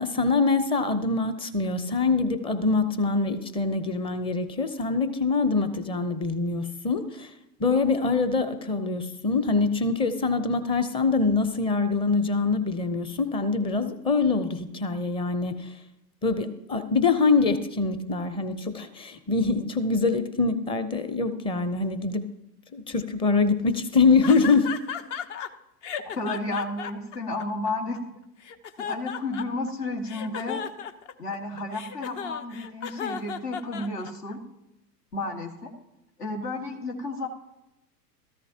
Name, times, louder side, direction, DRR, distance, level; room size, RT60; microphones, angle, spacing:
voice 1, 0.0-7.3 7.6-15.7 16.2-22.3 22.7-24.7, left 4 dB, 10° left, 11 dB, 0.6 m, -24 dB
sound 1, 24.2-25.5 25.8-28.0 28.4-29.7 30.1-34.3, left 7 dB, 45° left, 0.9 m, -35 dB
voice 2, 26.0-28.0 28.8-30.6 31.2-34.4 35.1-35.7 36.2-37.3, left 2 dB, 75° left, 1 dB, 2.0 m, -32 dB
14.5 x 13.5 x 2.8 m, 0.91 s
figure-of-eight pair, 105°, 49 cm